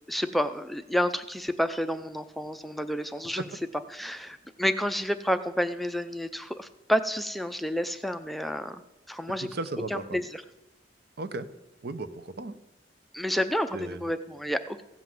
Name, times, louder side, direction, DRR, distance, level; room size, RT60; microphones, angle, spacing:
voice 1, 0.1-3.5 3.9-8.8 9.1-9.5 9.9-10.4 13.1-14.8, equal, ahead, 9 dB, 0.4 m, -30 dB
voice 2, 9.4-10.0 11.2-11.5 11.8-12.6 13.7-14.0, right 2 dB, 60° right, 12 dB, 0.8 m, -35 dB
15.5 x 5.7 x 7.6 m, 0.97 s
head